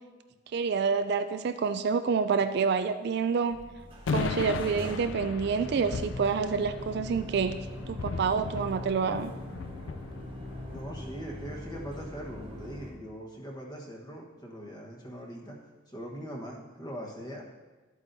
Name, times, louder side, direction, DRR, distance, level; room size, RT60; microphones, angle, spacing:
voice 1, 0.5-3.6 4.1-7.6 7.9-9.3, right 5 dB, 55° right, 10 dB, 0.3 m, -28 dB
sound 1, 3.5-12.9, left 1 dB, 25° right, 1.3 m, -42 dB
sound 2, 4.1-10.8, left 5 dB, 65° left, 0.4 m, -37 dB
voice 2, 10.7-15.6 15.9-17.4, equal, 20° left, 0 dB, 1.3 m, -41 dB
12.0 x 8.1 x 2.7 m, 1.3 s
head